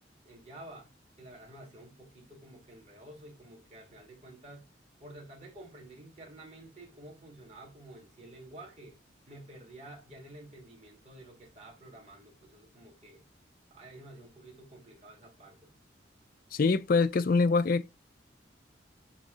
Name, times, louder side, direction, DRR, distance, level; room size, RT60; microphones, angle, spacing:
voice 1, 0.2-0.9 1.2-4.7 5.0-9.0 9.3-13.2 13.7-15.7, right 1 dB, 35° right, 2.7 m, -50 dB
voice 2, 16.5-17.9, left 4 dB, 50° left, 0.4 m, -24 dB
8.3 x 3.1 x 4.0 m
head